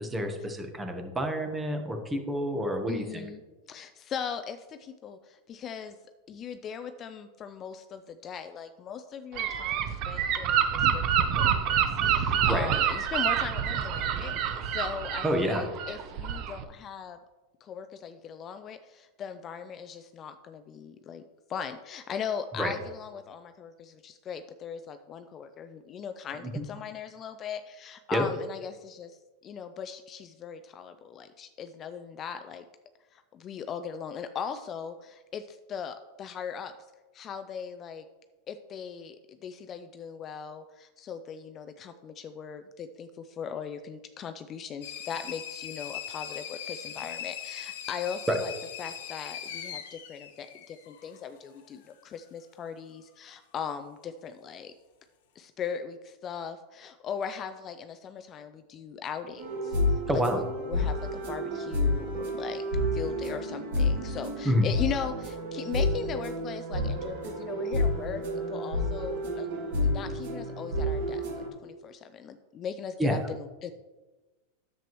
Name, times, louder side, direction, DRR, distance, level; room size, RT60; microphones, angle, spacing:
voice 1, 0.0-3.2 12.5-12.7 15.2-15.6 22.6-22.7 26.4-26.6 28.1-28.3 48.3-48.4 60.1-60.4 64.4-64.7 73.0-73.2, equal, 10° right, 5 dB, 1.0 m, -28 dB
voice 2, 2.9-3.4 3.7-6.0 6.3-17.2 17.6-21.2 21.5-32.6 33.1-36.7 37.1-38.1 38.5-48.5 48.8-54.7 55.4-60.0 60.3-62.6 62.9-69.5 69.8-73.7, left 7 dB, 30° left, 9 dB, 0.4 m, -39 dB
Gull seagull / Wind, 9.4-16.6, right 8 dB, 45° right, 0.7 m, -27 dB
sound 1, 44.8-51.2, left 9 dB, 75° left, 1.2 m, -40 dB
sound 2, 59.4-71.5, left 1 dB, 75° right, 2.3 m, -30 dB
9.9 x 7.6 x 3.1 m, 1.2 s
supercardioid pair, 145°, 0 cm